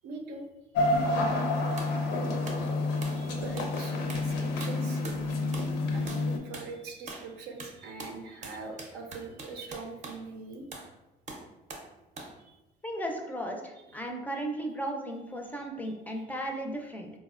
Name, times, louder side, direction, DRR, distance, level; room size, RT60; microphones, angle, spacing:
voice 1, 0.0-0.5 1.2-5.0 5.5-10.7 12.4-12.6 14.3-14.4 15.6-16.2, right 3 dB, 90° right, 3 dB, 0.6 m, -43 dB
sound 1, 0.7-6.4, left 2 dB, 85° left, 0.5 m, -29 dB
sound 2, 1.8-2.0 2.5-2.7 3.0-3.3 3.6-3.8 4.1-4.3 4.6-5.2 5.5-5.8 6.1-6.3 6.5-6.7 7.1-7.3 7.6-10.2 10.7-10.9 11.3-11.9 12.2-12.4, right 3 dB, 45° right, 0.6 m, -43 dB
voice 2, 12.8-17.1, right 1 dB, 10° left, 2 dB, 0.4 m, -35 dB
3.9 x 2.0 x 2.4 m, 0.98 s
cardioid pair, 110°, 17 cm